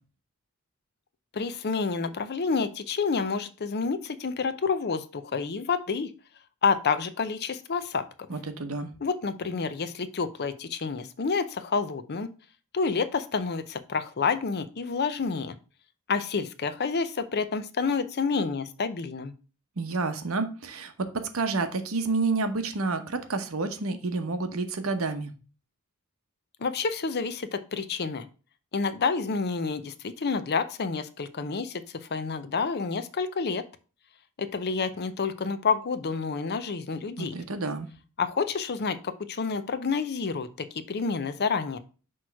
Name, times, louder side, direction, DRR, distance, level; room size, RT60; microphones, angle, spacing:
voice 1, 1.3-6.1 6.6-8.0 9.0-12.3 12.7-15.6 16.1-19.3 26.6-28.3 28.7-33.6 34.4-37.4 38.2-41.8, left 5 dB, 50° left, 12 dB, 0.6 m, -29 dB
voice 2, 8.3-8.9 19.8-25.3 37.2-37.9, right 3 dB, 70° right, 8 dB, 0.9 m, -29 dB
6.1 x 3.1 x 5.7 m, 0.35 s
head